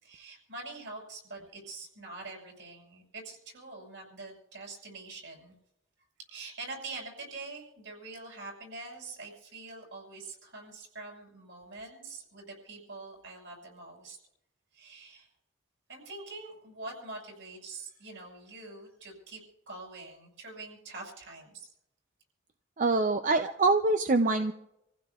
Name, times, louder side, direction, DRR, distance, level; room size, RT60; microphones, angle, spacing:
voice 1, 0.0-5.5 6.3-14.2 14.7-15.3 15.9-19.4 19.7-21.7, right 3 dB, 70° right, -1 dB, 6.1 m, -45 dB
voice 2, 22.8-24.5, right 3 dB, 40° right, 7 dB, 0.5 m, -25 dB
28.0 x 15.5 x 2.4 m, 0.83 s
head